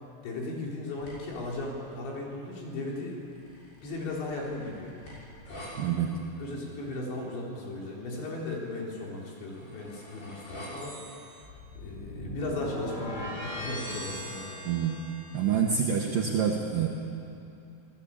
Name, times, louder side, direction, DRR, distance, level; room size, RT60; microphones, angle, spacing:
voice 1, 0.2-3.5 3.8-4.9 6.4-11.0 11.8-14.5, left 2 dB, 80° left, -2 dB, 6.5 m, -36 dB
sound 1, 1.0-1.4 3.3-5.7 9.2-15.6, equal, 60° left, 8.8 m, -41 dB
voice 2, 5.8-6.2 14.7-15.0 15.3-16.9, right 7 dB, 60° right, 1 dB, 2.5 m, -27 dB
27.5 x 18.5 x 8.8 m, 2.6 s
omnidirectional pair, 5.2 m